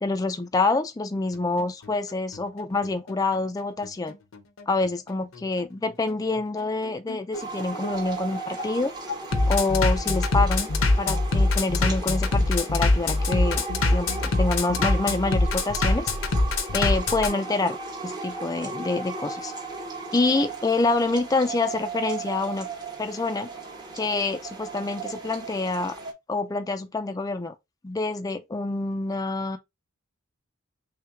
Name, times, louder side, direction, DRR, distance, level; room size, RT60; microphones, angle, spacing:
voice 1, 0.0-4.1 4.7-8.9 9.5-10.7 11.0-13.6 13.9-16.1 16.7-17.8 18.0-19.5 20.1-22.7 23.0-23.5 23.9-26.0 26.3-27.5 27.8-29.6, left 3 dB, 15° left, 0.3 m, -26 dB
Bass drum, 1.3-17.3, left 2 dB, 70° left, 0.7 m, -24 dB
sound 1, 7.3-26.1, right 4 dB, 20° right, 0.8 m, -36 dB
3.2 x 3.1 x 3.4 m
head